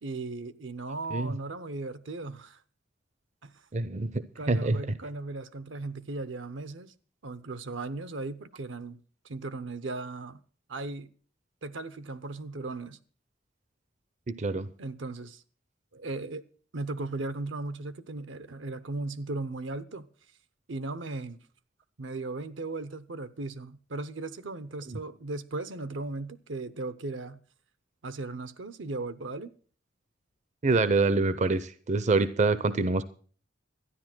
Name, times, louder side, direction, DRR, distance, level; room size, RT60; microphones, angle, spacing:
voice 1, 0.0-2.6 3.4-3.5 4.4-6.9 7.2-9.0 9.2-10.4 10.7-11.1 11.6-13.0 14.8-15.4 15.9-16.4 16.7-20.1 20.7-21.4 22.0-27.4 28.0-29.5, right 2 dB, 75° right, 0.8 m, -37 dB
voice 2, 3.7-4.2 4.5-4.8 14.3-14.7 24.9-25.0 30.6-33.0, right 3 dB, 40° right, 0.6 m, -26 dB
12.5 x 10.5 x 6.0 m
head